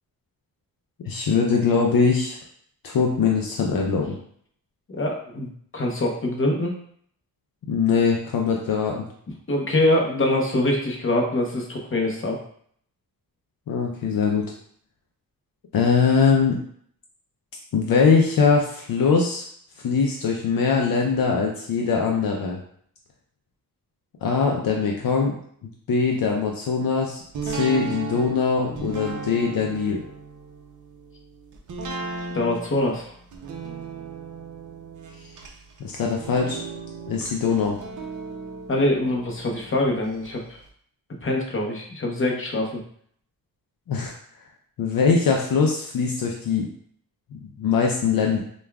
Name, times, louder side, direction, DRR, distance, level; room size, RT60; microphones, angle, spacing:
voice 1, 1.0-2.4 2.8-4.2 7.7-9.0 13.7-14.4 15.7-16.6 17.7-19.4 19.8-22.6 24.2-25.4 25.9-30.0 35.8-36.6 37.1-37.8 43.9-44.1 44.8-46.7 47.4-48.4, left 5 dB, 65° left, 0 dB, 0.6 m, -22 dB
voice 2, 4.9-6.7 9.5-12.4 32.3-33.1 38.7-40.6 41.2-42.8, left 1 dB, 35° left, -1 dB, 0.9 m, -24 dB
sound 1, 27.3-40.3 40.7-40.8, right 4 dB, 55° right, 0.7 m, -36 dB
5.0 x 2.3 x 2.3 m, 0.62 s
wide cardioid pair, 105°, 37 cm